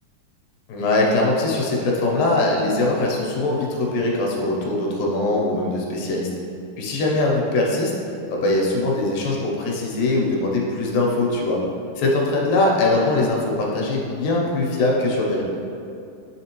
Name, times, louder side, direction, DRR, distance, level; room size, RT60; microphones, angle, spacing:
voice 1, 0.7-6.3 6.8-7.9 8.3-11.6 12.0-15.4, left 2 dB, 90° left, -2 dB, 2.6 m, -21 dB
9.7 x 3.6 x 3.0 m, 2.6 s
omnidirectional pair, 3.7 m